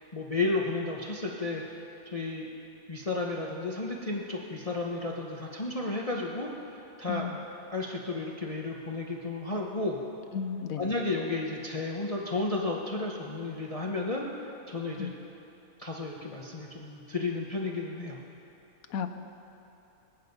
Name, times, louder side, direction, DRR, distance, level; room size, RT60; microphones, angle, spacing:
voice 1, 0.1-1.6 2.0-2.5 2.9-7.3 7.7-10.0 10.8-15.1 15.8-18.2, left 3 dB, 25° left, -1 dB, 1.0 m, -33 dB
voice 2, 10.3-10.9 15.0-15.1 18.9-19.1, left 6 dB, 75° left, 8 dB, 1.2 m, -33 dB
25.0 x 8.8 x 5.4 m, 2.9 s
omnidirectional pair, 1.6 m